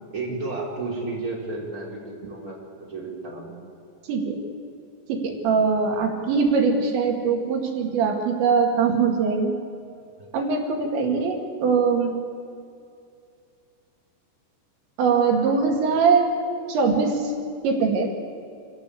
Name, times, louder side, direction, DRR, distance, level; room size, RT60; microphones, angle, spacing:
voice 1, 0.1-3.5 10.2-10.3, right 3 dB, 20° right, -4 dB, 5.5 m, -32 dB
voice 2, 4.1-4.4 5.1-9.5 10.3-12.1 15.0-16.4 16.7-17.3 17.6-18.1, right 5 dB, 85° right, 2 dB, 4.7 m, -22 dB
27.0 x 16.5 x 8.5 m, 2.5 s
omnidirectional pair, 5.1 m